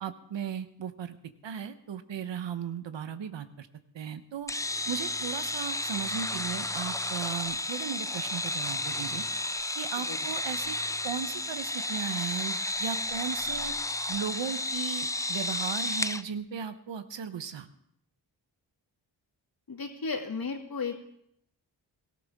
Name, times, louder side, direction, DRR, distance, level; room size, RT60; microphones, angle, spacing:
voice 1, 0.0-1.2 1.4-3.7 3.9-4.5 4.9-9.2 9.7-10.8 11.0-13.7 14.1-17.7, right 7 dB, 75° right, 10 dB, 1.0 m, -36 dB
sound 1, 4.5-16.2, left 2 dB, 10° left, 0.5 m, -32 dB
voice 2, 19.7-21.1, left 4 dB, 50° left, 3 dB, 2.4 m, -34 dB
17.5 x 14.0 x 3.6 m, 0.72 s
cardioid pair, 50°, 44 cm